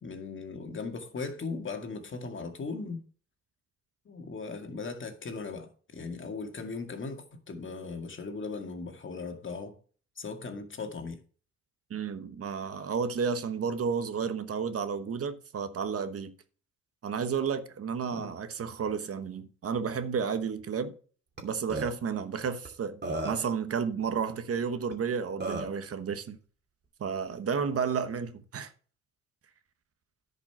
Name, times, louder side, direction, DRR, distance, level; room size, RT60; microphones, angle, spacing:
voice 1, 0.0-3.0 4.1-9.7 10.2-11.2 18.1-18.3, left 4 dB, 40° left, 2.0 m, -38 dB
voice 2, 11.9-16.3 17.0-20.9 21.4-26.4 27.0-28.7, right 6 dB, 50° right, 1.1 m, -32 dB
Burping eructation, 21.4-21.5 21.7-21.9 22.6-22.7 23.0-23.5 24.9-25.0 25.4-25.8, right 2 dB, 35° right, 2.7 m, -33 dB
10.5 x 5.4 x 5.7 m
cardioid pair, 90°, 30 cm